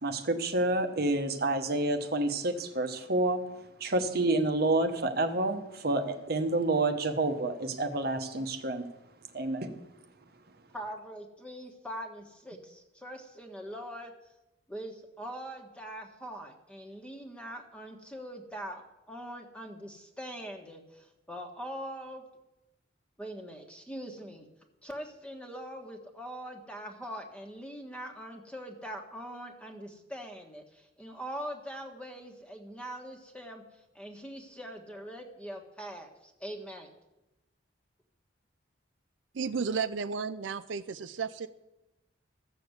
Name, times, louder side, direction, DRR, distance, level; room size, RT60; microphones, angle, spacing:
voice 1, 0.0-3.4 3.8-8.9 9.3-9.7, right 2 dB, 55° right, 7 dB, 1.1 m, -29 dB
voice 2, 10.7-14.1 14.7-18.8 19.1-22.2 23.2-24.5 24.8-33.6 33.9-36.9, equal, 5° left, 3 dB, 1.4 m, -42 dB
voice 3, 39.3-40.8 41.2-41.5, right 5 dB, 80° right, 10 dB, 0.5 m, -32 dB
14.0 x 7.0 x 8.0 m, 0.96 s
head